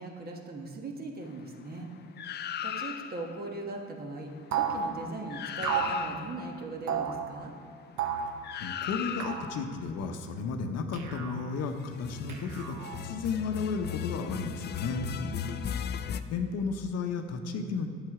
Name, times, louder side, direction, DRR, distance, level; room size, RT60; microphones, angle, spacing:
voice 1, 0.0-1.9 2.6-7.5 15.1-15.6, right 2 dB, 30° right, 2 dB, 1.4 m, -40 dB
sound 1, 2.2-3.3 5.0-5.1 5.3-6.5 8.4-9.6 11.9-16.2, left 9 dB, 35° left, 0.4 m, -37 dB
sound 2, 4.5-4.8 5.6-6.0 6.9-7.2 8.0-8.3 9.2-9.5 10.9-11.4 12.3-13.0, right 7 dB, 75° right, 1.1 m, -32 dB
voice 2, 8.6-15.1 16.3-17.9, left 5 dB, 60° left, 6 dB, 0.9 m, -33 dB
11.0 x 7.7 x 4.8 m, 2.1 s
cardioid pair, 130°, 29 cm